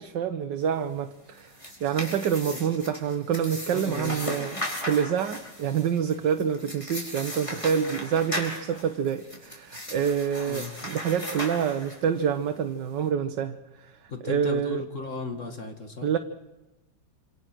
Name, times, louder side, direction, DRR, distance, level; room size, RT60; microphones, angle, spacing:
voice 1, 0.0-14.8 16.0-16.2, right 8 dB, 80° right, 7 dB, 1.7 m, -27 dB
sound 1, 1.3-12.2, left 1 dB, 15° left, 5.2 m, -37 dB
voice 2, 3.7-4.2 10.5-10.7 14.1-16.1, left 3 dB, 45° left, 5 dB, 2.3 m, -35 dB
27.5 x 26.5 x 6.2 m, 1.1 s
omnidirectional pair, 1.9 m